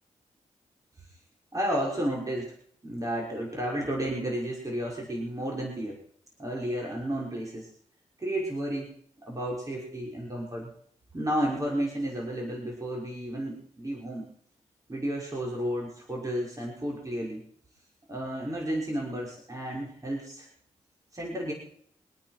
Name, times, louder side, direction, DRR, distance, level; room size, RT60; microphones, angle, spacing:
voice 1, 1.5-2.5 2.8-6.0 6.4-7.7 8.2-8.9 9.3-10.7 11.1-14.3 14.9-17.4 18.1-20.5 21.1-21.5, right 1 dB, 25° right, -3 dB, 6.1 m, -32 dB
25.0 x 9.0 x 6.1 m, 0.63 s
cardioid pair, 60°, 13 cm